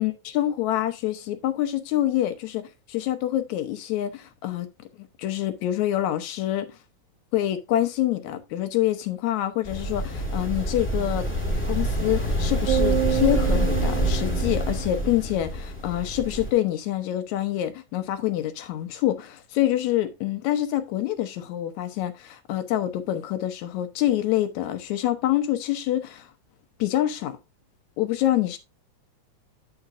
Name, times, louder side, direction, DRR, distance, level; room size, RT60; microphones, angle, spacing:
voice 1, 0.0-2.6 2.9-4.7 5.0-6.8 7.3-11.3 11.7-26.3 26.8-27.4 28.0-28.6, left 13 dB, 75° left, 2.3 m, -26 dB
sound 1, 9.6-16.5, right 1 dB, 5° left, 1.4 m, -26 dB
sound 2, 12.7-15.2, right 11 dB, 80° right, 2.2 m, -28 dB
9.0 x 7.9 x 2.6 m
omnidirectional pair, 3.4 m